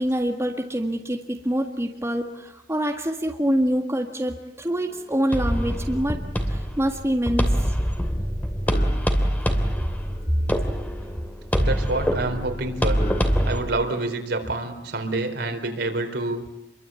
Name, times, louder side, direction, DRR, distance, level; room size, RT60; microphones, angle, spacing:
voice 1, 0.0-6.2 6.5-7.8, equal, 15° right, 3 dB, 1.9 m, -25 dB
sound 1, 4.7-14.2, left 1 dB, 35° left, 3.2 m, -43 dB
sound 2, 5.3-13.6, equal, 10° left, 2.7 m, -25 dB
voice 2, 11.6-13.0 13.4-16.4, right 2 dB, 65° right, 5 dB, 4.3 m, -27 dB
28.5 x 23.0 x 8.6 m, 0.87 s
head